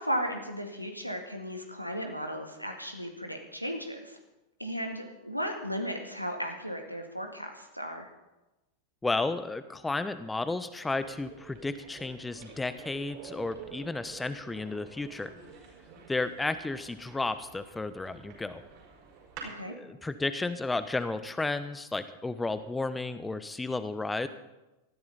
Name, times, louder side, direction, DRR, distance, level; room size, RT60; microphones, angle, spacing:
voice 1, 0.0-4.2 4.6-8.1 19.4-19.7, equal, 90° right, 4 dB, 2.0 m, -35 dB
voice 2, 9.0-15.3 16.1-18.6 19.7-24.3, left 3 dB, 10° left, 12 dB, 0.9 m, -33 dB
sound 1, 11.0-19.6, right 5 dB, 45° right, 5.3 m, -49 dB
19.0 x 14.0 x 4.1 m, 1.0 s
figure-of-eight pair, 90°, 0 cm